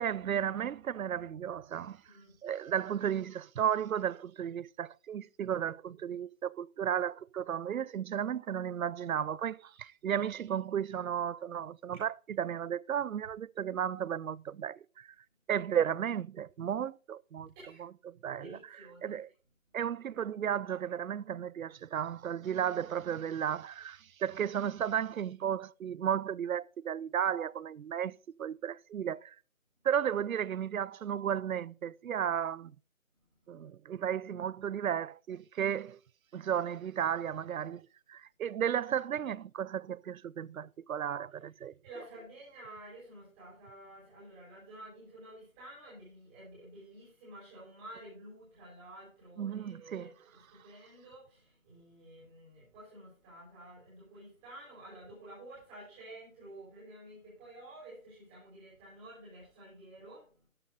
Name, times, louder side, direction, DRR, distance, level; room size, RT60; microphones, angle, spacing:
voice 1, 0.0-2.0 2.4-15.1 15.5-17.5 17.8-18.6 19.0-19.3 19.7-29.4 29.8-32.7 33.5-36.0 36.3-41.7 49.4-50.1, right 9 dB, 80° right, 0.5 m, -34 dB
voice 2, 2.0-2.4 11.9-12.0 17.4-17.8 18.3-19.2 41.8-60.5, right 1 dB, 10° right, 5.0 m, -51 dB
13.0 x 8.3 x 4.0 m
figure-of-eight pair, 170°, 42 cm